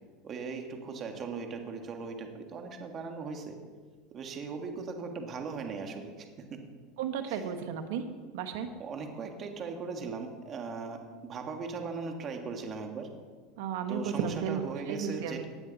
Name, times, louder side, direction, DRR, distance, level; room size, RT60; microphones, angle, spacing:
voice 1, 0.2-3.6 4.1-6.6 7.3-7.4 8.8-13.1 13.9-15.4, right 4 dB, 35° right, 4 dB, 1.9 m, -39 dB
voice 2, 7.0-8.0 8.3-8.7 13.6-15.4, right 7 dB, 70° right, 8 dB, 1.4 m, -34 dB
17.0 x 9.4 x 4.2 m, 1.5 s
supercardioid pair, 105°, 0 cm